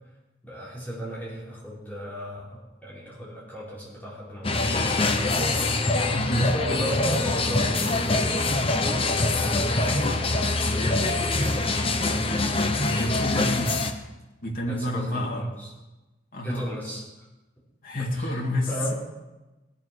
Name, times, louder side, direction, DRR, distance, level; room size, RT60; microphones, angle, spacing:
voice 1, 0.4-5.4 6.4-11.6 12.0-12.3 14.7-15.7 16.4-17.0 18.1-18.9, equal, 10° left, -8 dB, 4.9 m, -36 dB
sound 1, 4.4-13.9, left 2 dB, 30° left, 1.0 m, -24 dB
voice 2, 6.1-6.5 13.0-13.7 14.4-15.5 16.3-16.7 17.8-18.7, equal, 50° left, -1 dB, 2.7 m, -29 dB
18.5 x 7.4 x 6.4 m, 1.1 s
head